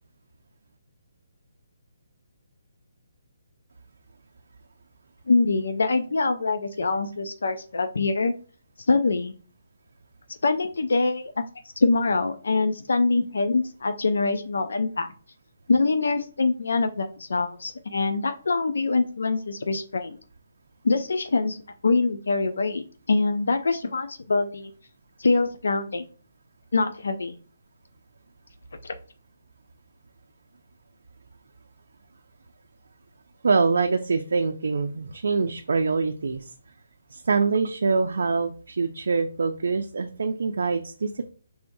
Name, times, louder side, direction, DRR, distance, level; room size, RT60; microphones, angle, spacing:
voice 1, 5.3-8.3 8.9-9.3 10.4-11.4 11.8-15.1 15.7-20.2 20.8-21.6 21.8-24.7 25.2-26.1 26.7-27.4 28.8-28.9, left 3 dB, 80° left, 8 dB, 0.4 m, -24 dB
voice 2, 33.4-36.5 37.1-41.3, right 4 dB, 70° right, 5 dB, 0.4 m, -24 dB
4.6 x 3.3 x 2.6 m, 0.39 s
hypercardioid pair, 170°, 0 cm